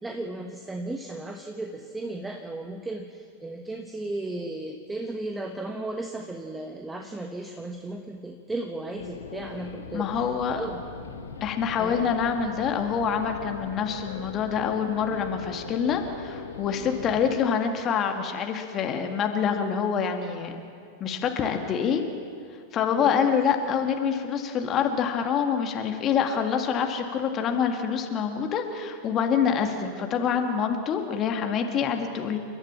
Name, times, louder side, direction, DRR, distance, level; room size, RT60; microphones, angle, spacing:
voice 1, 0.0-10.1 10.5-10.8 11.8-12.1 23.0-23.3, right 2 dB, 10° right, 4 dB, 1.3 m, -35 dB
sound 1, 8.9-17.4, left 5 dB, 70° left, 1.6 m, -40 dB
voice 2, 9.9-10.6 11.4-20.5 21.0-22.0 22.7-32.4, left 7 dB, 30° left, 4 dB, 1.9 m, -26 dB
29.5 x 12.5 x 7.5 m, 2.4 s
figure-of-eight pair, 90°, 0 cm